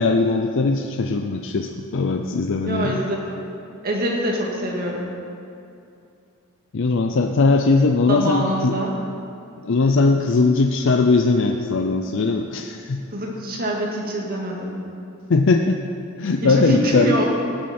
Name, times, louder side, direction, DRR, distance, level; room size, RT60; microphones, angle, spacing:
voice 1, 0.0-3.0 6.7-8.7 9.6-13.0 15.3-15.8 16.2-17.1, left 3 dB, 60° left, 4 dB, 0.5 m, -19 dB
voice 2, 2.7-3.2 3.8-5.1 8.1-9.0 13.1-14.9 16.4-17.3, equal, 45° right, -1 dB, 1.9 m, -25 dB
17.5 x 8.0 x 4.3 m, 2.5 s
head